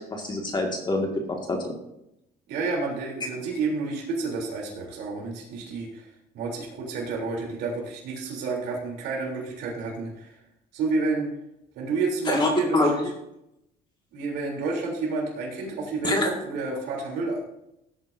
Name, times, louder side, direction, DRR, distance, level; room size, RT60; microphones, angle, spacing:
voice 1, 0.0-1.7 12.3-12.9 16.0-16.3, left 2 dB, 25° left, 1 dB, 1.9 m, -25 dB
voice 2, 2.5-6.1 6.3-10.4 10.7-11.3 11.7-13.0 14.1-17.4, right 3 dB, 85° right, -2 dB, 3.3 m, -30 dB
16.5 x 8.9 x 2.7 m, 0.84 s
cardioid pair, 110°, 17 cm